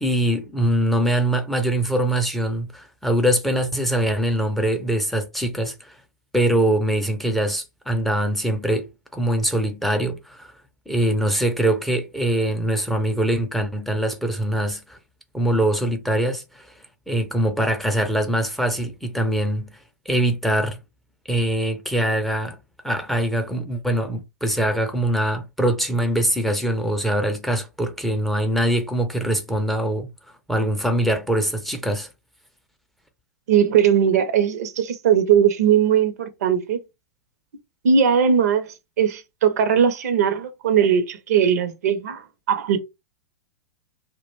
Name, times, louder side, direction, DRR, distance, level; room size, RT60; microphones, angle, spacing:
voice 1, 0.0-6.0 6.3-10.5 10.9-15.0 15.3-16.8 17.1-20.8 21.3-22.6 22.8-30.1 30.5-32.1, right 1 dB, ahead, 0.5 m, -23 dB
voice 2, 33.5-36.8 37.8-42.2 42.5-42.8, right 8 dB, 60° right, 0.6 m, -19 dB
2.3 x 2.1 x 3.1 m
hypercardioid pair, 105°, 9 cm